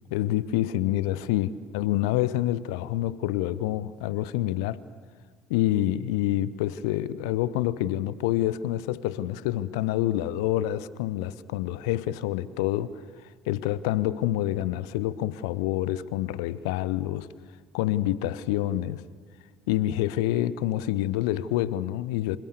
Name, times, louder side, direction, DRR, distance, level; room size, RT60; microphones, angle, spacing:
voice 1, 0.1-4.8 5.5-13.0 13.5-17.3 17.7-19.0 19.7-22.4, left 14 dB, 65° left, 18 dB, 0.8 m, -27 dB
27.5 x 26.0 x 6.8 m, 1.5 s
figure-of-eight pair, 60°, 3 cm